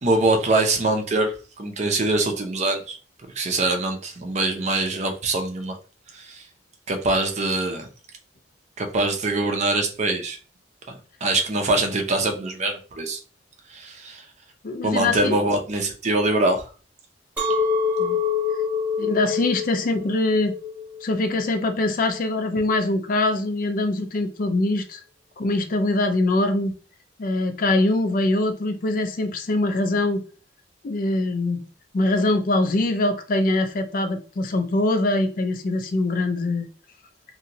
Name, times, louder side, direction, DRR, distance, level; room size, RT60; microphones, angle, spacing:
voice 1, 0.0-3.0 3.4-5.8 6.1-6.4 6.9-7.9 8.8-10.4 10.9-13.2 13.7-14.2 14.8-16.7, right 2 dB, 40° right, 0.6 m, -23 dB
voice 2, 14.6-15.4 18.0-18.2 19.0-20.5 21.0-25.0 25.4-26.7 27.2-30.2 30.8-31.6 31.9-36.6, left 2 dB, 50° left, 0.4 m, -23 dB
Chink clink, 17.4-22.5, left 5 dB, 10° right, 1.0 m, -26 dB
2.9 x 2.7 x 2.6 m
head